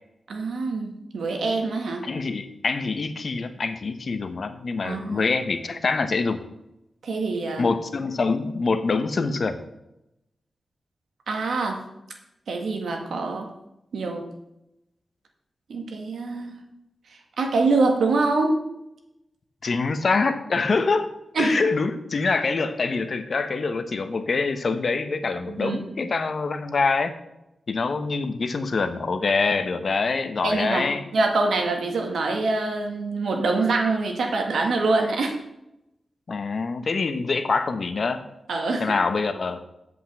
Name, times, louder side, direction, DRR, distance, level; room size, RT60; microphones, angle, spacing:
voice 1, 0.3-2.0 4.8-5.3 7.0-7.6 11.3-11.8 12.5-13.5 13.9-14.2 15.7-16.6 17.4-18.5 21.4-21.7 25.5-25.9 30.4-30.8 31.1-35.4 38.5-38.9, right 3 dB, 90° right, 3 dB, 1.8 m, -25 dB
voice 2, 2.0-6.4 7.6-9.6 19.6-21.1 21.4-27.1 27.7-31.0 36.3-38.2 38.8-39.6, left 4 dB, 55° left, 9 dB, 1.0 m, -25 dB
8.1 x 5.4 x 7.7 m, 0.86 s
wide cardioid pair, 90°, 0 cm